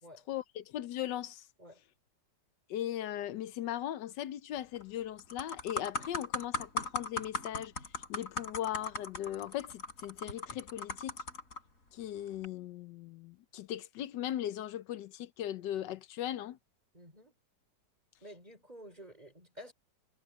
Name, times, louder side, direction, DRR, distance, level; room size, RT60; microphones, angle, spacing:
voice 1, 0.3-1.4 2.7-7.7 8.1-11.1 11.9-16.6, left 12 dB, 75° left, 1.4 m, -38 dB
sound 1, 4.6-4.8 5.2-11.6 12.3-12.5, left 3 dB, 45° left, 5.0 m, -38 dB
voice 2, 16.9-17.3 18.2-19.7, equal, 20° right, 5.1 m, -51 dB
omnidirectional pair, 1.9 m